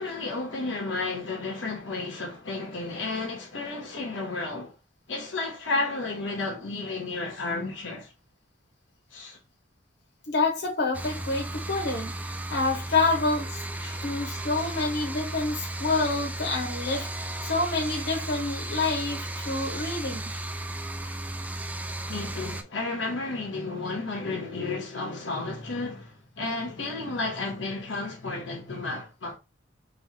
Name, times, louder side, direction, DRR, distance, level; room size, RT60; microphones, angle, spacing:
voice 1, 0.0-4.7 5.1-8.1 9.1-9.4 13.8-14.1 14.5-14.7 16.9-17.1 19.4-19.6 22.1-29.4, left 3 dB, 90° left, 1.4 m, -32 dB
voice 2, 10.3-13.6 14.0-20.2, left 3 dB, 65° left, 1.3 m, -28 dB
sound 1, 10.9-22.6, right 1 dB, 10° right, 0.4 m, -35 dB
3.5 x 3.3 x 3.1 m
head